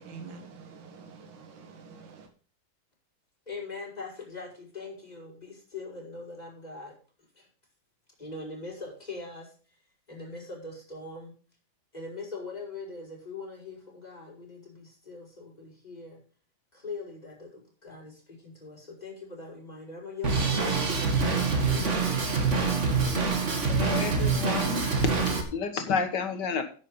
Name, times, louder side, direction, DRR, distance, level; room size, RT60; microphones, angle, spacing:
voice 1, 0.0-2.3, right 5 dB, 70° right, 4 dB, 2.3 m, -46 dB
voice 2, 3.5-6.9 7.3-7.5 8.2-9.5 10.1-11.3 11.9-16.2 16.7-22.0, left 3 dB, 20° left, -2 dB, 5.0 m, -42 dB
Drum kit, 20.2-25.4, right 4 dB, 35° right, 2.0 m, -25 dB
voice 3, 23.7-24.8 25.5-26.6, left 5 dB, 60° left, 8 dB, 1.9 m, -30 dB
10.5 x 7.5 x 5.5 m, 0.39 s
omnidirectional pair, 2.2 m